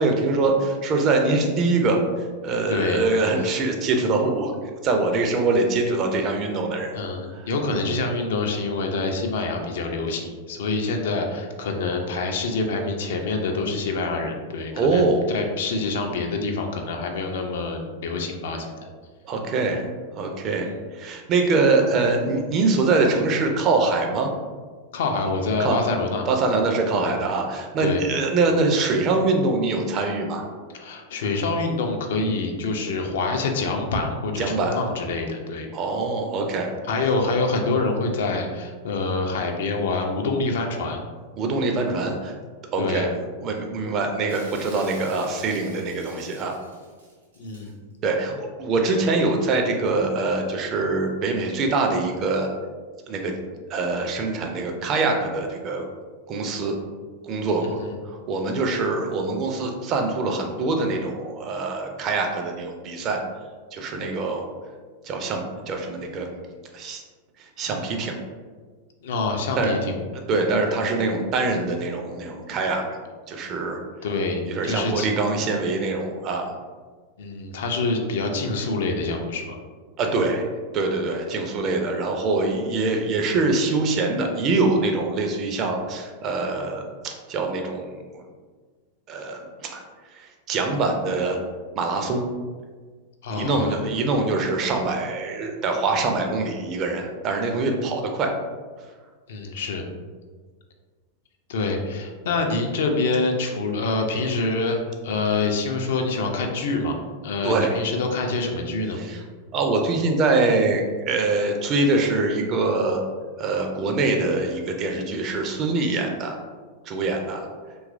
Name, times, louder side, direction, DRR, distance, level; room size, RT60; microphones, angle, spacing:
voice 1, 0.0-2.0 2.4-4.5 4.8-6.9 7.3-7.5 14.7-15.2 19.2-19.8 20.2-24.3 25.6-25.8 26.3-30.4 34.4-34.8 35.7-36.7 41.4-42.3 42.7-43.1 43.4-46.5 48.0-52.5 53.1-53.3 53.7-55.8 56.3-56.8 57.2-57.8 58.1-63.2 63.7-64.4 65.0-66.3 66.7-67.0 67.6-68.2 69.6-69.7 70.3-72.8 73.3-73.8 74.5-76.5 80.0-80.5 80.7-88.2 89.1-89.8 90.1-91.4 91.8-92.3 93.3-98.3 107.4-107.7 109.0-109.2 109.5-113.0 113.4-116.3 116.9-117.5, right 3 dB, 35° right, 3 dB, 0.4 m, -24 dB
voice 2, 2.7-3.0 6.9-18.9 24.9-26.3 27.8-28.0 30.7-35.7 36.9-41.0 42.8-43.1 47.4-47.7 57.6-58.0 69.0-69.9 74.0-75.1 77.2-79.6 93.2-93.8 99.3-99.8 101.5-104.8 105.0-107.0 107.2-109.0, left 3 dB, 60° left, 3 dB, 0.3 m, -26 dB
Shatter, 44.3-47.7, right 1 dB, 70° right, 0.7 m, -47 dB
2.9 x 2.3 x 2.4 m, 1.5 s
figure-of-eight pair, 90°, 0 cm